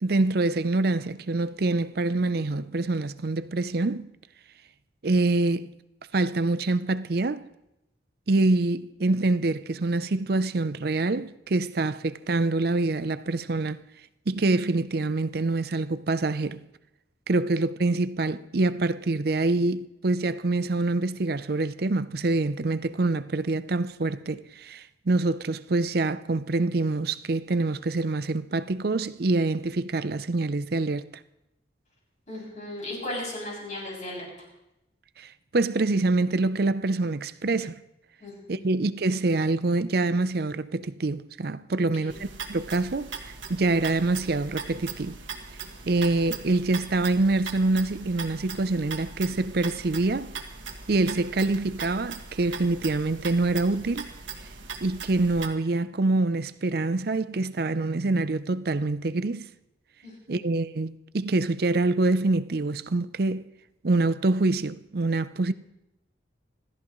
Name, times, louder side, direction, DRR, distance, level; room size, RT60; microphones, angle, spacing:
voice 1, 0.0-4.1 5.0-5.7 6.1-7.5 8.3-13.8 14.3-16.7 17.3-31.1 35.2-37.8 38.5-45.2 45.9-50.3 50.9-54.1 54.8-59.5 60.3-63.4 63.8-65.5, right 2 dB, 55° right, 0.6 m, -25 dB
voice 2, 32.3-34.3 38.2-38.7 41.7-42.2 60.0-60.4, left 1 dB, 40° left, 7.0 m, -37 dB
sound 1, 42.1-55.5, right 5 dB, 85° right, 1.8 m, -40 dB
26.5 x 13.5 x 3.1 m
head